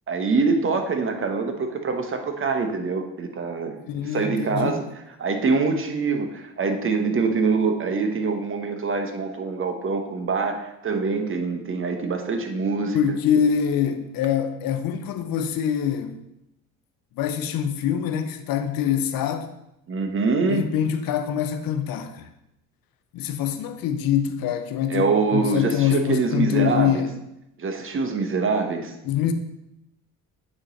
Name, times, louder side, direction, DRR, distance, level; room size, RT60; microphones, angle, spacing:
voice 1, 0.1-4.8 5.2-13.0 19.9-20.6 24.9-27.0 27.6-28.9, right 4 dB, 35° right, 1.0 m, -24 dB
voice 2, 3.9-4.7 12.9-16.2 17.2-19.5 20.5-22.3 23.1-27.2 29.0-29.3, left 9 dB, 80° left, 0.7 m, -24 dB
8.7 x 3.1 x 4.0 m
cardioid pair, 80°, 35 cm